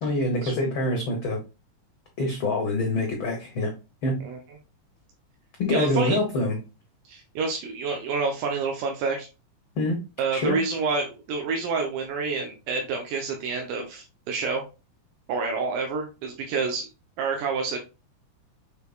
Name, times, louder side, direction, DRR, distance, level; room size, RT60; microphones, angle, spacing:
voice 1, 0.0-1.4 2.2-3.7 4.0-4.2 5.6-6.6 9.8-10.0 10.3-10.6, left 2 dB, 80° left, 2 dB, 1.1 m, -25 dB
voice 2, 5.7-6.2 7.1-9.3 10.2-14.6 15.3-16.9 17.2-17.8, right 4 dB, 90° right, 2 dB, 2.4 m, -28 dB
6.5 x 3.5 x 2.3 m, 0.28 s
omnidirectional pair, 3.6 m